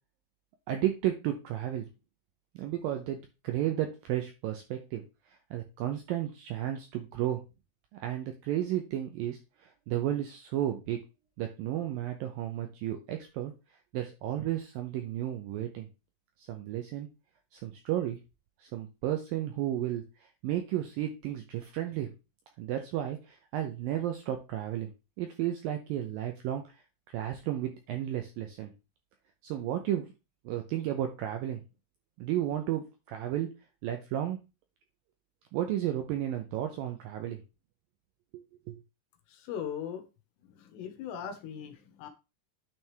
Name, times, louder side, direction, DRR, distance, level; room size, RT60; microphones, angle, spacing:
voice 1, 0.7-1.9 2.6-7.4 8.0-11.0 11.4-13.5 13.9-15.9 16.4-17.1 17.5-18.2 18.6-22.1 22.6-24.9 25.2-26.8 27.1-28.7 29.4-30.1 30.5-31.6 32.2-33.5 33.8-34.4 35.5-37.4 38.3-38.4 38.7-38.8, right 12 dB, 85° right, 5 dB, 2.0 m, -33 dB
voice 2, 39.3-40.0 40.4-42.1, left 8 dB, 80° left, 7 dB, 3.2 m, -39 dB
9.2 x 4.6 x 3.3 m, 0.28 s
omnidirectional pair, 4.9 m